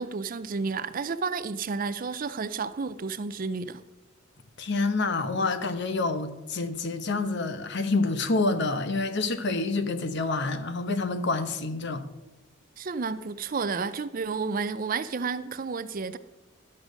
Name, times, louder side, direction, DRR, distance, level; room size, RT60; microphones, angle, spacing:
voice 1, 0.0-3.8 12.8-16.2, right 4 dB, 45° right, 0.5 m, -31 dB
voice 2, 4.6-12.0, left 3 dB, 60° left, 0.9 m, -27 dB
12.0 x 6.6 x 6.2 m
head